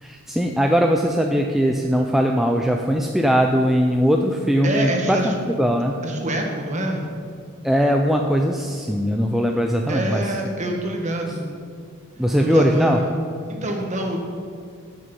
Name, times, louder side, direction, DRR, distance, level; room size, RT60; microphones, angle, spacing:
voice 1, 0.0-5.9 7.6-10.3 12.2-13.0, equal, ahead, 2 dB, 0.4 m, -20 dB
voice 2, 4.6-5.3 6.0-7.1 9.9-11.5 12.4-13.2 13.5-14.2, right 1 dB, 30° right, 1 dB, 1.4 m, -25 dB
14.0 x 6.5 x 5.3 m, 2.2 s
head